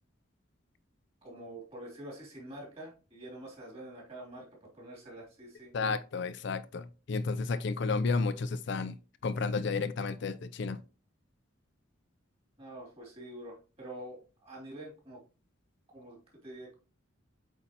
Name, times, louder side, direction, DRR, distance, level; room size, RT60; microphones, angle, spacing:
voice 1, 1.2-5.7 12.6-15.2 15.9-16.7, right 1 dB, 30° right, 2.8 m, -46 dB
voice 2, 5.7-8.9 9.2-10.8, left 4 dB, 60° left, 0.4 m, -32 dB
8.2 x 4.2 x 2.9 m
head